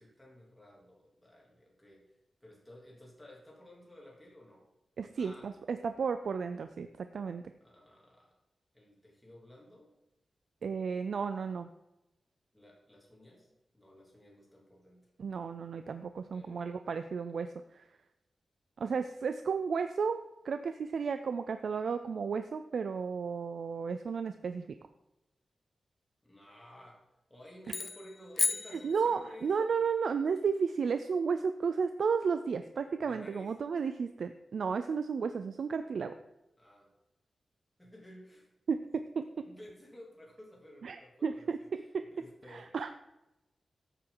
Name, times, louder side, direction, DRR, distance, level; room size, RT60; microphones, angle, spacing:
voice 1, 0.0-2.0 2.4-4.6 5.2-5.5 7.6-8.4 8.7-10.0 12.5-13.5 13.7-15.1 16.3-16.8 26.2-27.0 27.3-29.5 33.0-33.5 36.6-36.9 37.8-38.5 39.4-41.5 41.8-42.7, left 1 dB, 5° left, -3 dB, 3.1 m, -54 dB
voice 2, 5.0-7.5 10.6-11.7 15.2-17.8 18.8-24.7 28.7-36.1 38.7-39.4 40.8-42.0 42.5-43.0, right 5 dB, 70° right, 9 dB, 0.5 m, -33 dB
sound 1, 27.7-29.6, left 4 dB, 45° left, 0.5 m, -34 dB
13.5 x 9.0 x 4.0 m, 0.94 s
wide cardioid pair, 175°, 0 cm